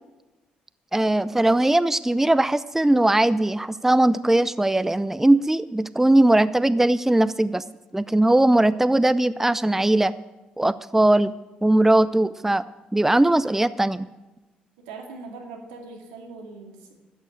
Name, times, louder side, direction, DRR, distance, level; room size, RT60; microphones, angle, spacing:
voice 1, 0.9-7.6 7.9-10.1 10.6-11.3 11.6-12.6 12.9-14.1, right 1 dB, 10° right, 16 dB, 0.5 m, -19 dB
voice 2, 14.8-16.9, right 3 dB, 80° right, 2 dB, 2.5 m, -41 dB
13.0 x 9.3 x 8.9 m, 1.1 s
hypercardioid pair, 50°, 4 cm